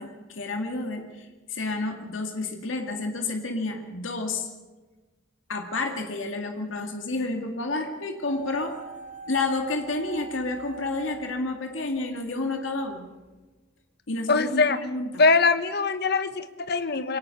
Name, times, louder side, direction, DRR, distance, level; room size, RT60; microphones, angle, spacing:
voice 1, 0.0-4.5 5.5-8.8 9.3-13.2 14.1-15.2, left 2 dB, 80° left, 4 dB, 2.2 m, -30 dB
sound 1, 8.2-12.3 12.6-12.7, right 4 dB, 35° left, 2.9 m, -43 dB
voice 2, 14.3-14.8 15.2-17.2, left 4 dB, 55° left, 11 dB, 1.3 m, -22 dB
23.0 x 18.5 x 7.0 m, 1.2 s
head